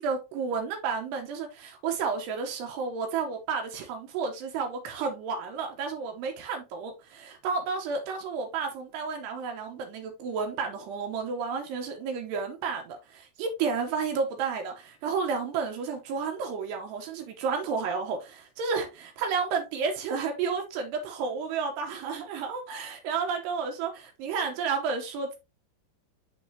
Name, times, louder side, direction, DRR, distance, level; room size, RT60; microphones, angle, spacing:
voice 1, 0.0-25.4, right 5 dB, 75° right, 2.9 m, -31 dB
9.9 x 3.7 x 2.8 m
omnidirectional pair, 5.4 m